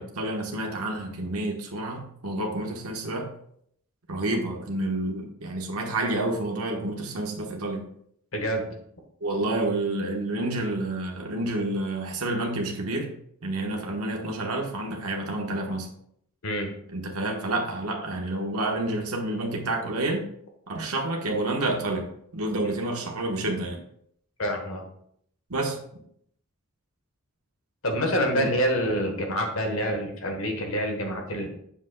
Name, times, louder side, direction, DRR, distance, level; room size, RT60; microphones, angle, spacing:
voice 1, 0.0-3.3 4.1-7.8 9.2-13.1 13.4-15.9 16.9-20.2 20.7-22.0 22.3-23.8 25.5-25.8 28.4-28.5, right 2 dB, 90° right, 1 dB, 1.3 m, -29 dB
voice 2, 8.3-8.7 16.4-16.7 24.4-24.8 27.8-31.5, equal, 65° left, 3 dB, 1.3 m, -27 dB
7.7 x 7.0 x 2.3 m, 0.69 s
head